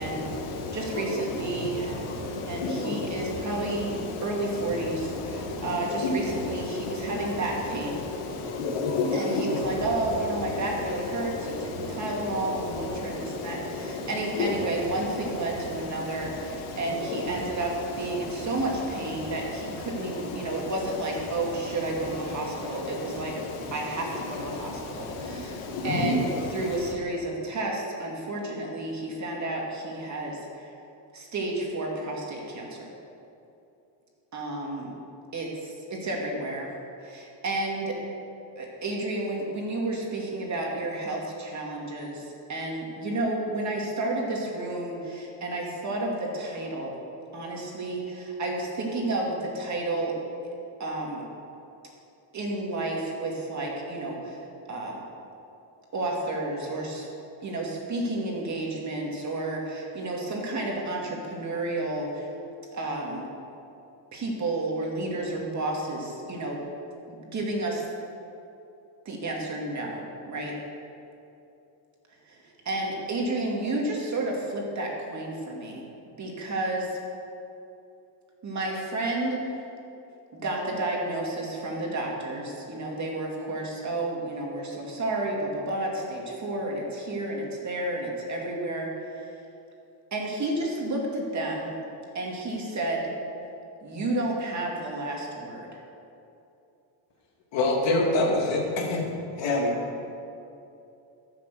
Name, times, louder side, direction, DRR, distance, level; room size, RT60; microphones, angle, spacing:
voice 1, 0.0-26.9, left 3 dB, 75° left, 1 dB, 2.0 m, -33 dB
voice 2, 0.7-8.0 9.1-23.4 23.7-25.6 25.8-30.7 31.1-32.9 34.3-34.9 35.3-36.7 37.0-38.0 38.6-47.0 47.3-50.1 50.8-51.3 52.3-54.4 54.7-55.0 55.9-57.1 57.4-62.3 62.7-63.3 64.1-66.6 67.1-67.8 69.0-70.6 72.3-72.4 72.6-75.8 76.2-77.0 78.4-79.6 80.3-89.3 90.1-91.7 92.1-93.1 93.8-95.8, right 2 dB, 35° right, -1 dB, 2.5 m, -31 dB
voice 3, 97.5-99.0 99.4-99.8, left 2 dB, 60° left, -1 dB, 2.6 m, -24 dB
14.0 x 6.7 x 6.9 m, 2.7 s
cardioid pair, 130°, 50 cm